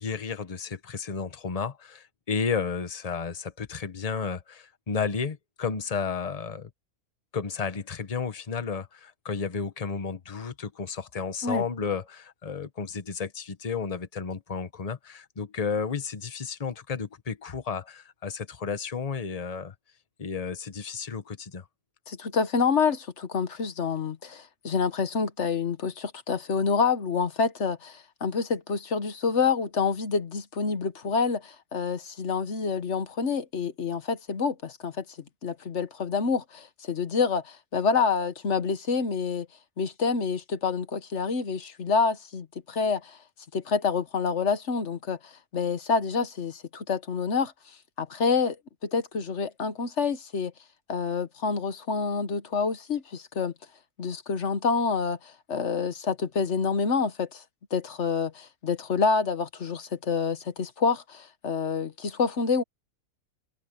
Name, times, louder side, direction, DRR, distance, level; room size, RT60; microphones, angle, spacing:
voice 1, 0.0-6.7 7.3-19.7 20.2-21.6, left 5 dB, 30° left, 1.0 m, -32 dB
voice 2, 22.1-35.0 35.4-39.5 39.8-43.2 43.5-45.2 45.5-47.5 48.0-48.6 48.8-50.5 50.9-53.5 54.0-57.4 57.7-62.6, left 5 dB, 50° left, 1.4 m, -27 dB
omnidirectional pair, 1.6 m